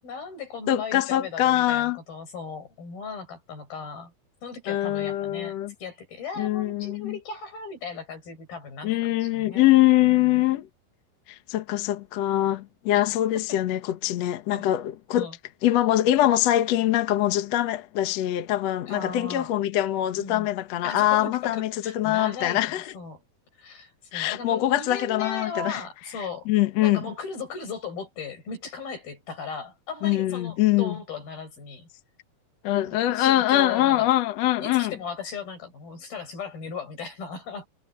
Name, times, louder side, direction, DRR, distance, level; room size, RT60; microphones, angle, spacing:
voice 1, 0.0-4.1 4.4-5.6 5.8-9.7 10.0-10.4 12.9-13.0 13.5-13.6 14.5-14.7 15.1-15.4 18.9-19.5 20.2-20.5 20.8-23.2 23.6-26.5 26.8-31.9 32.9-34.1 34.6-37.7, left 5 dB, 80° left, 8.9 m, -37 dB
voice 2, 0.7-2.0 4.7-5.7 6.4-7.1 8.8-10.7 11.3-15.3 15.6-22.9 24.1-25.8 26.5-27.0 30.0-31.0 32.6-34.9, left 14 dB, 60° left, 1.9 m, -23 dB
omnidirectional pair, 4.2 m